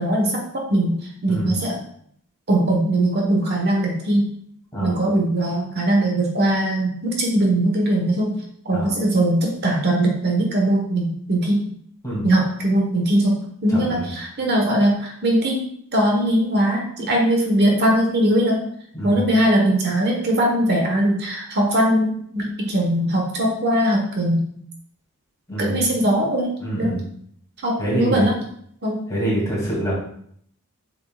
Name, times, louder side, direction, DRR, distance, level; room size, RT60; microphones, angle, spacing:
voice 1, 0.0-1.8 2.5-4.2 4.8-8.3 8.6-11.6 12.2-15.6 15.9-18.6 19.0-24.4 25.6-26.9 27.6-28.3 28.8-29.0, right 1 dB, 50° right, 0 dB, 1.2 m, -20 dB
voice 2, 1.3-1.6 4.7-5.0 8.7-8.9 12.0-12.3 13.7-14.0 18.9-19.2 25.5-25.8 26.6-27.0 27.8-28.3 29.1-30.0, right 1 dB, 15° left, -5 dB, 2.5 m, -25 dB
7.7 x 5.7 x 2.3 m, 0.67 s
head